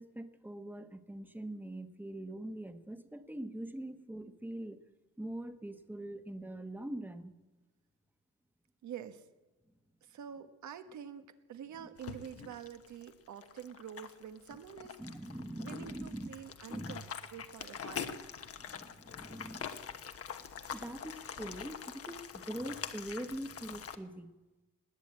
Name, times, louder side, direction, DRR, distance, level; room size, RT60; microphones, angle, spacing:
voice 1, 0.0-4.8 5.2-7.3 11.8-11.9 15.0-16.3 16.7-16.9 18.6-19.7 20.7-24.3, right 1 dB, 5° right, 9 dB, 1.2 m, -43 dB
voice 2, 8.8-9.3 10.0-17.0 17.3-18.2, right 8 dB, 70° right, 9 dB, 1.3 m, -47 dB
sound 1, 12.0-24.0, left 7 dB, 50° left, 1.2 m, -45 dB
20.0 x 8.2 x 8.7 m, 1.2 s
cardioid pair, 90°, 30 cm